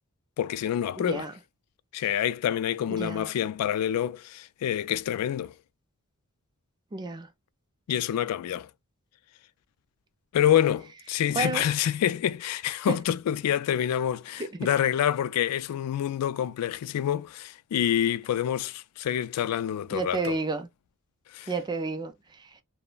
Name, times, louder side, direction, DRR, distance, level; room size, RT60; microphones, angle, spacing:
voice 1, 0.4-1.3 1.9-5.5 7.9-8.7 10.3-20.3 21.3-21.5, left 10 dB, 90° left, 0.3 m, -27 dB
voice 2, 1.0-1.3 2.9-3.3 6.9-7.3 11.3-11.7 12.9-13.0 14.4-14.7 19.9-20.7 21.5-22.6, right 3 dB, 20° right, 0.4 m, -31 dB
3.0 x 2.1 x 2.3 m
head